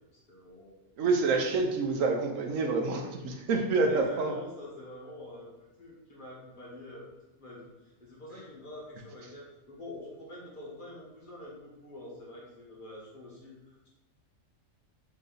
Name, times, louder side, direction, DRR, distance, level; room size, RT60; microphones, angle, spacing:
voice 1, 0.3-0.8 3.9-5.5 5.8-7.1 7.4-13.9, left 1 dB, 40° left, -5 dB, 1.3 m, -46 dB
voice 2, 1.0-4.3, right 3 dB, 80° right, 3 dB, 1.1 m, -27 dB
3.9 x 3.3 x 3.8 m, 1.1 s
omnidirectional pair, 1.4 m